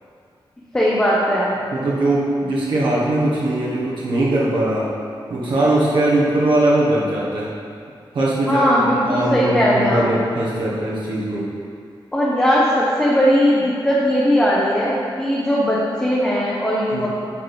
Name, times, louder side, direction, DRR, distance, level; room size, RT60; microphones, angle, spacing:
voice 1, 0.7-1.5 8.5-10.0 12.1-17.1, equal, 10° left, -6 dB, 0.9 m, -18 dB
voice 2, 1.7-4.9 5.3-7.5 8.1-11.5 16.9-17.1, right 1 dB, 65° right, -7 dB, 1.4 m, -20 dB
8.5 x 4.4 x 5.2 m, 2.3 s
wide cardioid pair, 165°, 9 cm